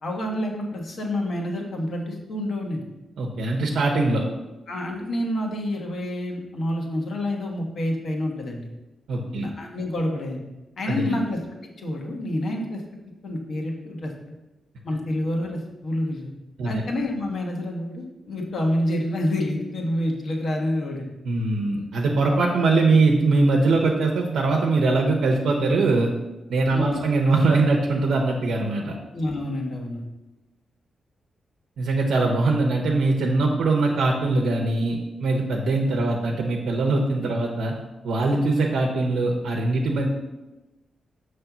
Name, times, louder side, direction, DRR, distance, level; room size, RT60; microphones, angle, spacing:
voice 1, 0.0-2.8 4.7-8.7 9.4-10.4 10.8-11.4 11.8-12.8 13.2-14.1 14.8-16.3 16.6-21.1 26.7-27.0 29.1-30.0, left 1 dB, 55° left, 0 dB, 1.3 m, -28 dB
voice 2, 3.2-4.2 9.1-9.5 10.9-11.2 16.6-16.8 21.2-26.1 26.5-29.0 31.8-37.7 38.0-40.1, right 3 dB, 90° right, -1 dB, 0.8 m, -22 dB
6.7 x 3.3 x 6.0 m, 1.0 s
wide cardioid pair, 145°, 0 cm